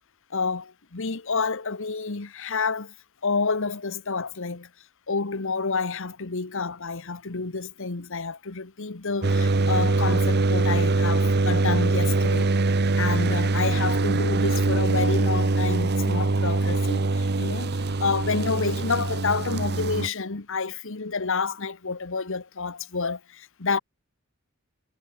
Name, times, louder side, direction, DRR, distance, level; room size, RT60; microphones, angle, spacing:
voice 1, 0.3-2.9 3.2-4.7 5.1-12.5 13.0-23.8, left 4 dB, 65° left, 1.3 m, -29 dB
sound 1, 9.2-20.1, right 3 dB, 50° right, 0.9 m, -23 dB
head